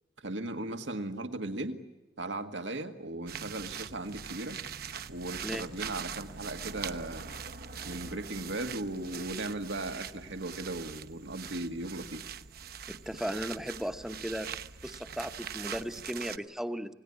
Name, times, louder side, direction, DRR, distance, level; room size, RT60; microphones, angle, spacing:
voice 1, 0.2-1.8 2.2-4.6 5.1-7.3 7.8-12.3, right 2 dB, 90° right, 7 dB, 1.9 m, -37 dB
sound 1, 3.3-16.4, right 7 dB, 55° right, 1.0 m, -42 dB
voice 2, 12.9-14.5 14.8-16.9, equal, 5° right, 8 dB, 0.9 m, -36 dB
27.5 x 19.0 x 9.8 m, 1.1 s
head